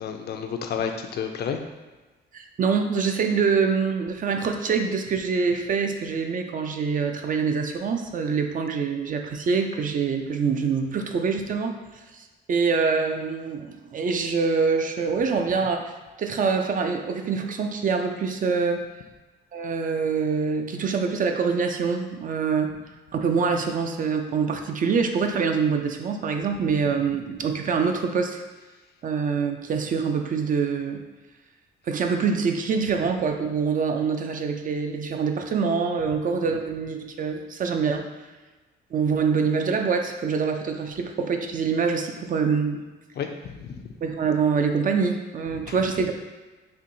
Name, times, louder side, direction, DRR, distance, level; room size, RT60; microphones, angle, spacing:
voice 1, 0.0-1.6 43.2-43.8 45.7-45.8, left 7 dB, 55° left, 5 dB, 0.4 m, -31 dB
voice 2, 2.3-11.8 12.1-15.9 16.2-18.9 19.5-22.7 23.1-28.4 29.0-31.0 31.9-38.1 38.9-42.8 44.0-46.1, right 5 dB, 45° right, 5 dB, 0.4 m, -25 dB
4.3 x 2.7 x 2.6 m, 1.2 s
cardioid pair, 90°, 20 cm